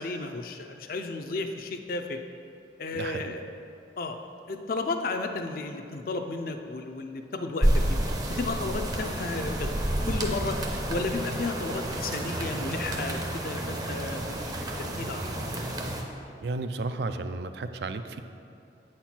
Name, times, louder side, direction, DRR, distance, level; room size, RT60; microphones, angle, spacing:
voice 1, 0.0-2.2 2.8-3.4 4.0-4.2 4.5-8.0 8.3-9.7 10.1-10.6 10.9-15.6, left 3 dB, 50° left, 5 dB, 0.5 m, -33 dB
voice 2, 2.9-3.3 16.4-18.2, right 3 dB, 65° right, 9 dB, 0.4 m, -33 dB
sound 1, 7.6-16.0, right 1 dB, 20° right, 0.6 m, -30 dB
8.0 x 4.4 x 5.9 m, 2.6 s
head